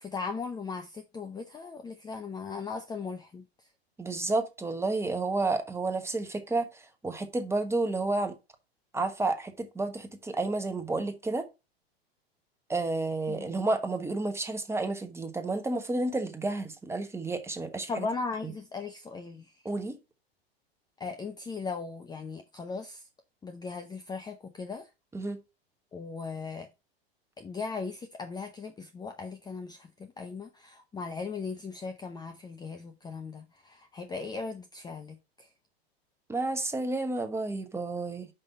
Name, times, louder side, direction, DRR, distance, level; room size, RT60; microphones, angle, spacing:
voice 1, 0.0-3.4 13.3-13.6 17.9-19.5 21.0-23.0 23.4-24.9 25.9-26.7 27.4-35.5, left 4 dB, 15° left, 0.7 m, -38 dB
voice 2, 4.0-8.4 8.9-11.5 12.7-18.1 18.4-18.5 19.6-20.0 25.1-25.4 36.3-38.3, right 2 dB, 10° right, 1.1 m, -31 dB
5.5 x 5.4 x 5.3 m
hypercardioid pair, 105°, 31 cm